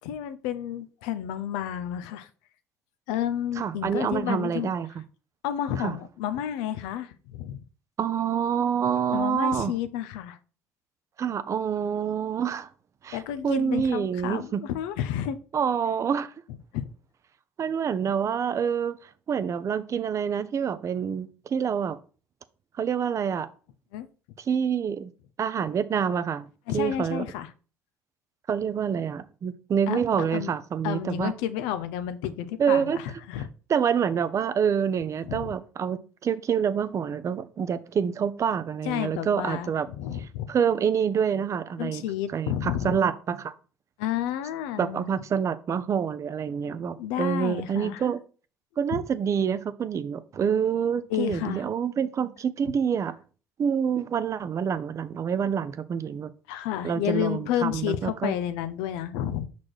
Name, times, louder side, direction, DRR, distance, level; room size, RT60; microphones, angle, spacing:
voice 1, 0.0-2.3 3.1-4.7 5.4-7.6 9.1-10.4 13.1-15.4 16.7-16.9 23.9-24.1 26.7-27.5 29.9-30.5 30.8-33.5 35.3-35.5 38.8-40.5 41.8-43.0 44.0-45.1 47.0-48.1 48.9-49.0 51.1-51.7 56.5-59.5, left 10 dB, 80° left, 0.6 m, -31 dB
voice 2, 3.6-5.0 5.8-6.0 8.0-9.7 11.2-12.7 13.0-13.2 13.4-14.6 15.5-16.3 17.6-19.0 19.3-22.0 22.8-23.5 24.5-25.1 25.4-26.5 26.7-27.2 28.5-31.3 32.6-33.0 33.7-39.9 40.5-42.0 42.3-43.5 44.8-48.2 48.8-53.2 53.6-56.3 56.8-58.4, right 7 dB, 50° right, 0.6 m, -27 dB
6.1 x 4.2 x 4.7 m
hypercardioid pair, 60°, 7 cm